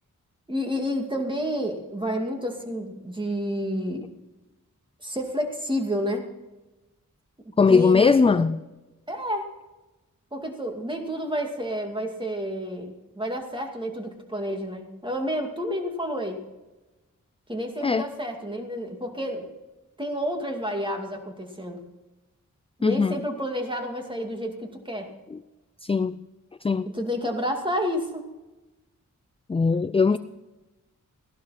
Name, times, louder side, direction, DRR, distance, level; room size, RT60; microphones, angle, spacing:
voice 1, 0.5-4.1 5.0-6.3 7.7-8.5 9.1-9.5 10.3-16.4 17.5-19.5 20.0-21.8 22.8-25.1 26.9-28.2 30.1-30.2, equal, 15° right, 3 dB, 2.4 m, -30 dB
voice 2, 7.6-8.6 17.8-18.0 22.8-23.2 25.3-25.4 25.8-26.3 26.6-26.9 29.5-30.2, left 4 dB, 20° left, 14 dB, 0.3 m, -20 dB
16.0 x 11.5 x 4.2 m, 1.1 s
wide cardioid pair, 75°, 31 cm